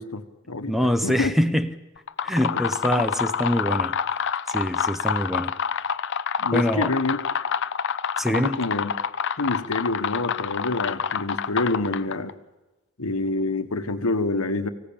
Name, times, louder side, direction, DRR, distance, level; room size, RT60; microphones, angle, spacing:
voice 1, 0.0-1.3 2.5-2.6 6.4-7.2 8.3-8.9 9.4-12.3 13.0-14.7, left 2 dB, 75° left, 9 dB, 1.4 m, -27 dB
voice 2, 0.7-1.7 2.2-4.2 4.5-5.5 6.5-6.9 8.2-8.6, equal, ahead, 10 dB, 0.8 m, -24 dB
sound 1, 2.0-12.3, left 7 dB, 55° left, 0.7 m, -27 dB
25.0 x 16.0 x 8.7 m, 1.1 s
head